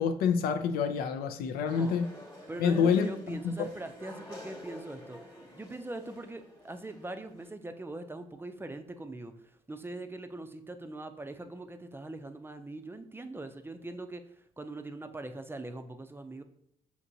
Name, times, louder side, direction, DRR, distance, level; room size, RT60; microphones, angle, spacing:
voice 1, 0.0-2.1 2.6-3.7, left 6 dB, 80° left, 8 dB, 0.4 m, -27 dB
sound 1, 1.7-7.5, left 1 dB, 20° left, 1.1 m, -49 dB
voice 2, 1.7-2.0 2.5-5.2 5.5-9.3 9.7-14.2 14.6-16.4, right 2 dB, 15° right, 8 dB, 0.4 m, -42 dB
4.4 x 2.9 x 2.6 m, 0.76 s
supercardioid pair, 60°, 15 cm